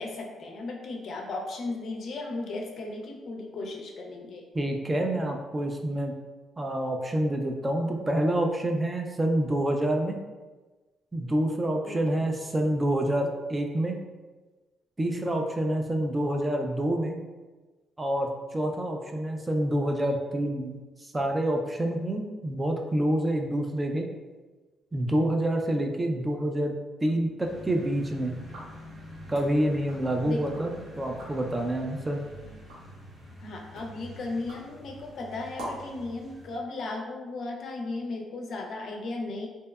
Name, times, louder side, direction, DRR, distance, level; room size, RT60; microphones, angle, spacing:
voice 1, 0.0-4.5 11.8-12.2 30.2-30.7 33.4-39.5, left 2 dB, 60° left, 1 dB, 0.4 m, -36 dB
voice 2, 4.5-6.1 6.6-10.2 11.1-14.0 15.0-17.2 18.0-24.1 24.9-28.3 29.3-32.2, right 1 dB, 20° right, 2 dB, 0.3 m, -27 dB
sound 1, 27.4-36.6, equal, 35° right, 0.8 m, -46 dB
sound 2, 28.4-30.7 31.0-31.5 32.0-36.0, right 1 dB, 90° right, 0.9 m, -46 dB
2.6 x 2.1 x 2.2 m, 1.3 s
cardioid pair, 90°, 0 cm